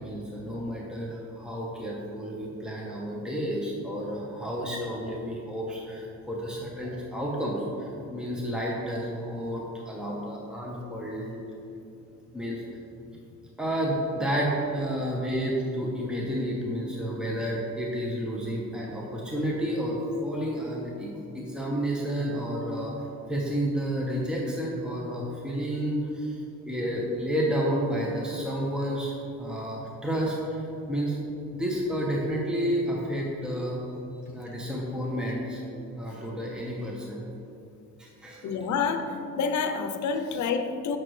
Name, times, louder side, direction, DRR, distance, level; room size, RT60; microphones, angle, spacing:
voice 1, 0.0-11.4 12.3-12.7 13.6-23.0 23.3-26.4 26.6-30.6 30.9-31.2 31.5-33.8 34.3-35.6 35.9-37.2 38.0-38.6, equal, 5° right, -4 dB, 1.2 m, -31 dB
voice 2, 38.4-41.0, left 5 dB, 70° left, 8 dB, 0.7 m, -28 dB
8.8 x 6.2 x 3.3 m, 2.7 s
cardioid pair, 90°, 30 cm